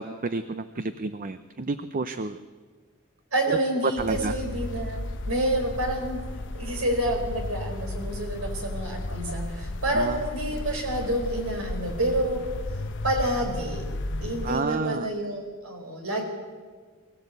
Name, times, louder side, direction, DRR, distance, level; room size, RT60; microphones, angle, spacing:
voice 1, 0.0-2.4 3.5-3.6 3.8-4.3 9.9-10.2 14.4-15.1, right 3 dB, 40° right, 11 dB, 0.6 m, -30 dB
voice 2, 3.3-6.2 6.5-12.4 13.0-13.9 14.2-16.2, right 1 dB, 80° right, 3 dB, 4.2 m, -28 dB
sound 1, 4.0-14.6, left 2 dB, 60° left, 0.9 m, -34 dB
23.5 x 15.0 x 8.2 m, 1.5 s
head